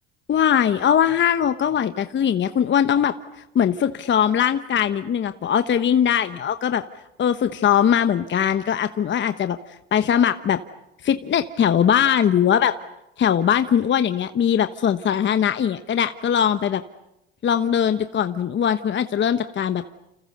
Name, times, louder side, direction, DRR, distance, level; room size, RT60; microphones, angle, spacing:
voice 1, 0.3-6.8 7.2-9.6 9.9-10.6 11.0-12.7 13.2-16.8 17.4-19.8, left 9 dB, 40° left, 10 dB, 1.1 m, -20 dB
29.5 x 28.0 x 6.8 m, 0.88 s
supercardioid pair, 90°, 30 cm